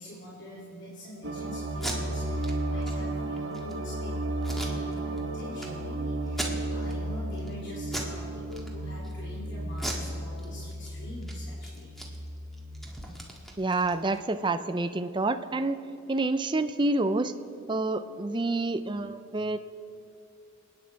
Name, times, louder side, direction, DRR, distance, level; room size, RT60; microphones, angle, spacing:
voice 1, 0.0-11.9, left 1 dB, 55° left, -6 dB, 3.2 m, -45 dB
sound 1, 1.2-12.8, right 1 dB, 60° right, 1.1 m, -34 dB
Packing tape duct tape, 1.7-2.0 2.4-2.5 2.8-2.9 3.4-3.7 4.4-5.2 5.6-5.7 6.3-6.9 7.3-7.5 7.9-8.2 8.5-9.1 9.7-10.9 11.2-11.3 11.6-14.2, right 1 dB, ahead, 1.7 m, -38 dB
voice 2, 13.6-15.8 16.1-17.3 17.7-19.6, right 2 dB, 20° right, 10 dB, 0.5 m, -28 dB
28.5 x 9.7 x 4.6 m, 2.6 s
head